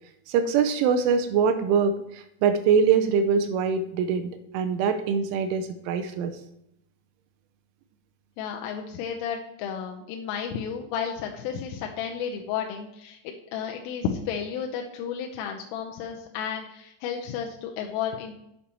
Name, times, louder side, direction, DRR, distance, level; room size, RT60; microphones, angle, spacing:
voice 1, 0.3-6.4, right 6 dB, 85° right, 9 dB, 2.9 m, -23 dB
voice 2, 8.4-18.4, left 7 dB, 85° left, 3 dB, 3.2 m, -32 dB
8.5 x 7.3 x 4.3 m, 0.79 s
omnidirectional pair, 5.9 m